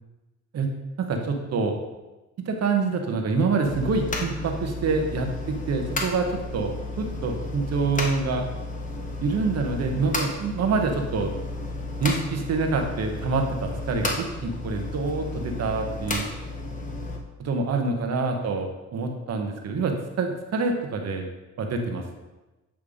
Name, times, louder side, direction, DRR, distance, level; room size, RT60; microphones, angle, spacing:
voice 1, 1.0-1.8 2.4-6.3 6.5-8.5 9.2-11.3 12.0-16.3 17.4-21.2 21.6-22.2, right 4 dB, 55° right, 4 dB, 1.1 m, -26 dB
sound 1, 3.6-17.2, left 2 dB, 25° left, 1.2 m, -33 dB
8.7 x 3.4 x 5.0 m, 1.1 s
cardioid pair, 90°, 30 cm